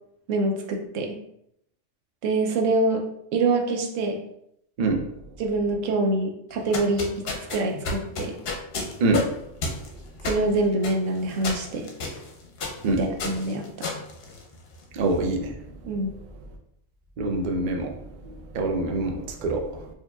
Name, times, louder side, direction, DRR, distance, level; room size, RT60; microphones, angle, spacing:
voice 1, 0.3-1.2 2.2-3.0 3.3-4.2 5.4-7.3 7.5-8.3 10.2-11.9 12.9-13.9 15.8-16.1, right 2 dB, 85° right, 3 dB, 1.0 m, -25 dB
sound 1, 6.5-14.9, left 3 dB, 60° left, 0.8 m, -33 dB
voice 2, 14.9-15.5 17.2-17.9 18.5-19.1 19.4-19.6, right 2 dB, 55° right, 3 dB, 0.5 m, -24 dB
4.5 x 2.7 x 2.3 m, 0.75 s
omnidirectional pair, 1.3 m